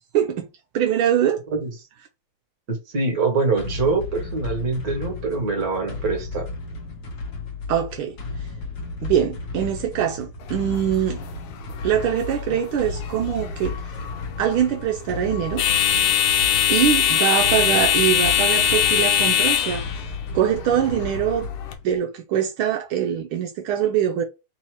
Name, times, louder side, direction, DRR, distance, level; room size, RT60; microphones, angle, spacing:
voice 1, 0.1-0.5 0.7-1.4 7.7-8.2 9.0-11.2 11.8-13.9 14.4-15.6 16.7-20.1 20.3-21.5 21.8-24.2, right 9 dB, 80° right, 1.5 m, -23 dB
voice 2, 2.7-6.5, right 4 dB, 45° right, 1.8 m, -24 dB
sound 1, 3.6-22.0, left 4 dB, 55° left, 1.4 m, -34 dB
sound 2, 10.4-21.7, left 9 dB, 75° left, 1.5 m, -23 dB
4.0 x 2.8 x 4.5 m
omnidirectional pair, 2.4 m